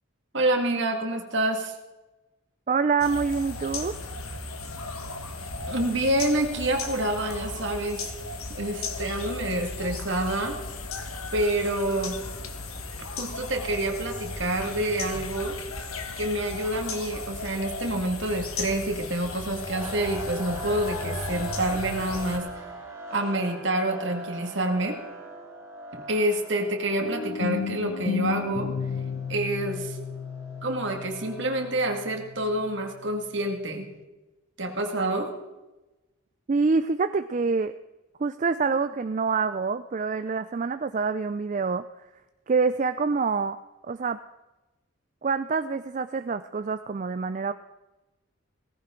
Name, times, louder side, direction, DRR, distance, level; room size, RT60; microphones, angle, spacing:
voice 1, 0.3-1.7 5.7-8.1 8.6-10.6 11.3-12.2 13.2-15.6 16.2-22.5 23.1-25.0 26.1-28.7 29.3-30.0 30.6-33.9 34.6-35.3, right 1 dB, 55° right, 4 dB, 2.0 m, -27 dB
voice 2, 2.7-3.9 36.5-37.7 38.2-42.0 42.5-43.6 43.9-44.2 45.2-47.5, right 4 dB, 35° right, 10 dB, 0.3 m, -26 dB
sound 1, 3.0-22.4, left 3 dB, 85° left, 1.5 m, -36 dB
sound 2, 19.7-32.1, right 1 dB, 15° right, 3.3 m, -41 dB
sound 3, 27.0-32.9, left 6 dB, 60° left, 0.4 m, -33 dB
17.5 x 15.5 x 3.8 m, 1.1 s
head